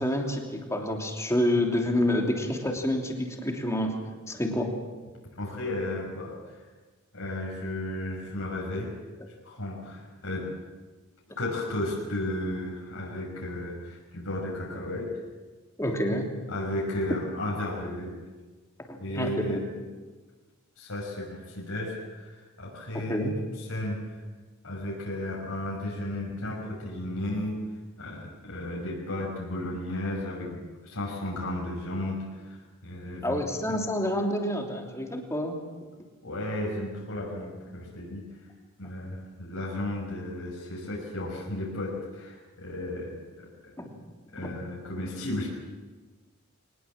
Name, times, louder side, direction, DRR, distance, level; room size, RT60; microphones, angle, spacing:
voice 1, 0.0-4.0 4.3-4.7 15.8-16.3 18.9-19.6 22.9-23.3 33.2-35.6 43.8-43.9 44.4-44.5, left 1 dB, 15° left, 2 dB, 3.0 m, -28 dB
voice 2, 5.3-6.6 7.1-8.9 9.4-10.5 11.4-15.1 16.5-18.1 19.0-19.6 20.8-23.3 23.7-24.2 24.6-27.6 28.0-33.4 33.7-33.8 36.2-38.2 38.8-43.7 44.3-45.5, left 1 dB, 80° left, -3 dB, 5.8 m, -34 dB
23.0 x 20.0 x 7.4 m, 1.3 s
head